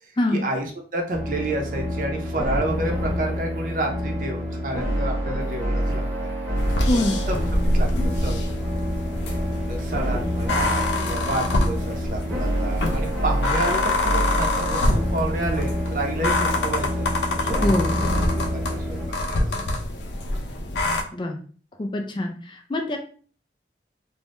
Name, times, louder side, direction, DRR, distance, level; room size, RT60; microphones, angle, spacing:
voice 1, 0.0-6.0 6.9-7.4 7.7-8.7 9.7-17.1 17.4-19.0 19.3-19.6, right 2 dB, 50° right, 1 dB, 0.6 m, -30 dB
sound 1, 1.1-19.1, equal, 5° right, 1.1 m, -27 dB
sound 2, 6.6-21.0, left 2 dB, 85° left, 0.5 m, -26 dB
voice 2, 6.9-7.2 17.6-18.0 21.1-21.4 21.8-22.3 22.7-23.0, left 1 dB, 25° left, 4 dB, 0.3 m, -23 dB
2.5 x 2.2 x 3.4 m, 0.43 s
head